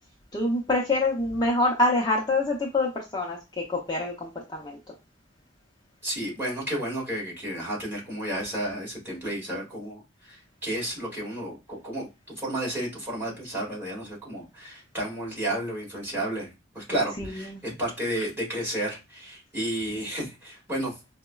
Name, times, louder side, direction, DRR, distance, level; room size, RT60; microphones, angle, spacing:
voice 1, 0.3-4.9 17.2-17.6, left 2 dB, 20° left, -3 dB, 0.5 m, -26 dB
voice 2, 6.0-16.5 16.7-20.9, right 1 dB, 10° right, -5 dB, 1.7 m, -32 dB
4.7 x 2.1 x 2.2 m, 0.25 s
head